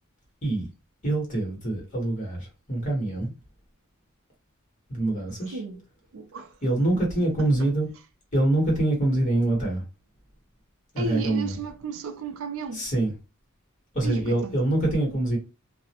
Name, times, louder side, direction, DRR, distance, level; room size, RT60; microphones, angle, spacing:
voice 1, 1.0-3.3 4.9-5.6 6.6-7.9 8.3-9.8 10.9-11.6 12.7-13.1 13.9-15.4, right 1 dB, 35° left, 1.2 m, -25 dB
voice 2, 5.5-5.8 6.1-6.6 7.4-7.7 11.0-12.9 14.0-14.6, right 4 dB, 65° right, 0.4 m, -34 dB
2.4 x 2.0 x 2.8 m
head